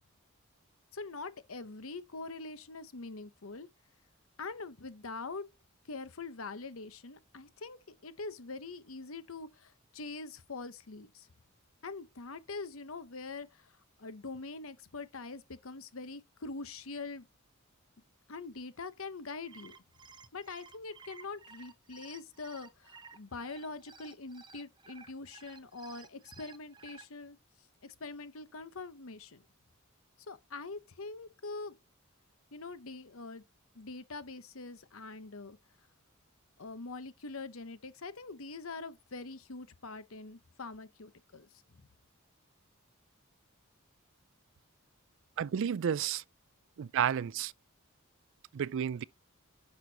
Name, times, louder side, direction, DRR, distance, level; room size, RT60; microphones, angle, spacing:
voice 1, 0.9-3.7 4.4-5.4 5.8-11.3 11.8-17.3 18.3-19.8 20.3-27.4 27.8-29.4 30.3-31.8 32.5-33.4 33.7-35.6 36.6-41.5, left 3 dB, 75° left, 1.0 m, -44 dB
sound 1, 19.3-27.0, right 5 dB, 20° right, 0.8 m, -54 dB
voice 2, 45.4-46.2 46.8-47.5 48.5-49.0, right 8 dB, 65° right, 0.4 m, -31 dB
10.5 x 6.6 x 2.9 m
head